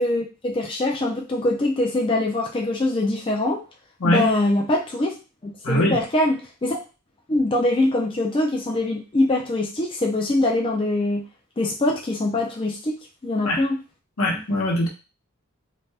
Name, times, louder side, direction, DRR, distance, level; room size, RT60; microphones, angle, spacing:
voice 1, 0.0-3.6 4.0-5.1 5.4-6.8 7.3-11.2 11.6-13.0 13.2-13.8, left 2 dB, 25° left, -1 dB, 0.4 m, -23 dB
voice 2, 5.6-6.0 13.4-13.6 14.2-14.9, left 1 dB, 75° left, -1 dB, 0.9 m, -21 dB
2.6 x 2.2 x 3.2 m, 0.31 s
head